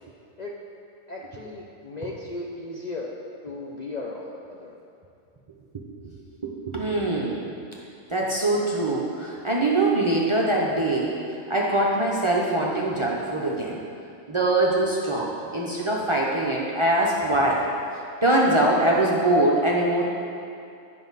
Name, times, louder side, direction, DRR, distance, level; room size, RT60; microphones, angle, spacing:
voice 1, 1.1-3.1 3.4-4.7, left 2 dB, 45° left, -3 dB, 0.6 m, -36 dB
voice 2, 6.4-7.5 8.1-11.1 11.5-13.8 14.3-17.6 18.2-20.0, right 1 dB, 30° right, -3 dB, 0.6 m, -23 dB
9.3 x 5.8 x 4.0 m, 2.6 s
omnidirectional pair, 1.3 m